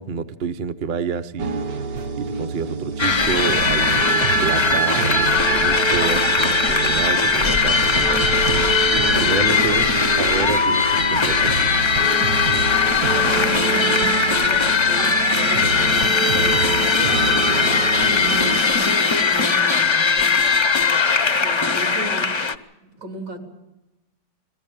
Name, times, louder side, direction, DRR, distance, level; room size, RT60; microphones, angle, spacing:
voice 1, 0.0-1.7 2.2-8.2 9.2-9.9 10.2-11.7, right 6 dB, 45° right, 9 dB, 0.7 m, -28 dB
sound 1, 1.4-18.6, right 4 dB, 65° right, 1.4 m, -28 dB
sound 2, 3.0-22.5, left 4 dB, 45° left, 0.3 m, -19 dB
voice 2, 8.8-9.4 13.0-20.3 21.3-22.5 22.8-23.4, right 2 dB, 80° right, 2 dB, 3.9 m, -35 dB
22.0 x 15.5 x 8.9 m, 1.0 s
omnidirectional pair, 1.8 m